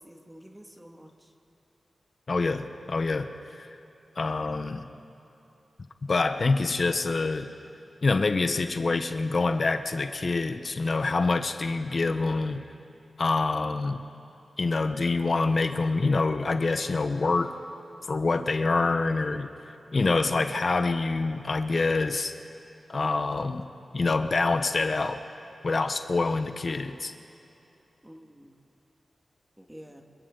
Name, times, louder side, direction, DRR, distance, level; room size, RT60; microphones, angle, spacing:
voice 1, 0.0-1.3 28.0-28.6 29.6-30.0, equal, 10° right, 2 dB, 2.0 m, -49 dB
voice 2, 2.3-3.7 4.2-4.8 6.1-7.5 8.0-12.6 13.2-14.0 14.6-17.6 18.1-22.3 22.9-23.7 23.9-25.2 25.6-27.1, left 3 dB, 55° left, 8 dB, 0.9 m, -26 dB
28.0 x 26.5 x 3.9 m, 2.8 s
cardioid pair, 65°, 0 cm